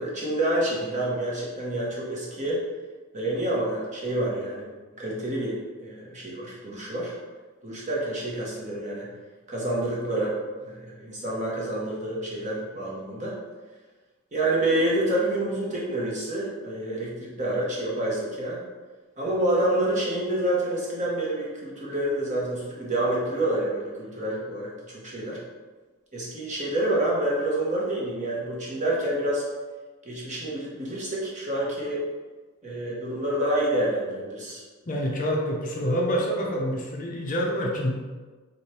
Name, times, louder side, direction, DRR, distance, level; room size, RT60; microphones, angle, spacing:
voice 1, 0.0-2.6 3.1-4.7 4.9-7.1 7.6-9.1 9.5-13.4 14.3-18.6 19.2-25.4 26.1-29.4 30.0-32.0 32.6-34.6, right 1 dB, 35° right, -4 dB, 1.0 m, -28 dB
voice 2, 34.9-37.9, equal, 35° left, -1 dB, 0.6 m, -27 dB
4.9 x 2.5 x 4.3 m, 1.3 s
head